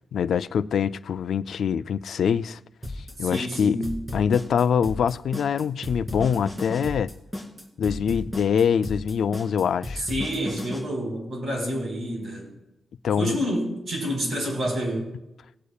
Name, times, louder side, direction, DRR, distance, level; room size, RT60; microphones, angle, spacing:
voice 1, 0.1-2.6 3.2-3.9 4.1-7.1 7.8-10.1 13.0-13.4, left 7 dB, 75° left, 0.4 m, -24 dB
sound 1, 2.8-10.8, left 1 dB, 10° right, 2.8 m, -34 dB
voice 2, 3.2-3.9 9.9-12.5 13.2-15.1, equal, 60° right, 4.2 m, -28 dB
19.5 x 8.4 x 2.3 m
wide cardioid pair, 120°, 0 cm